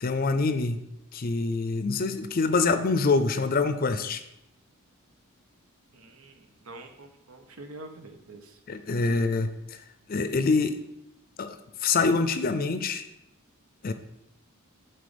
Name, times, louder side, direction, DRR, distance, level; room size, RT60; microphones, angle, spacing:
voice 1, 0.0-0.8 1.1-4.2 8.7-9.5 10.1-10.8 11.4-11.6 11.8-13.0 13.8-13.9, left 4 dB, 45° left, 10 dB, 0.5 m, -25 dB
voice 2, 5.9-8.6 9.1-9.2, right 2 dB, 80° right, 6 dB, 0.9 m, -46 dB
7.7 x 3.9 x 5.2 m, 0.85 s
head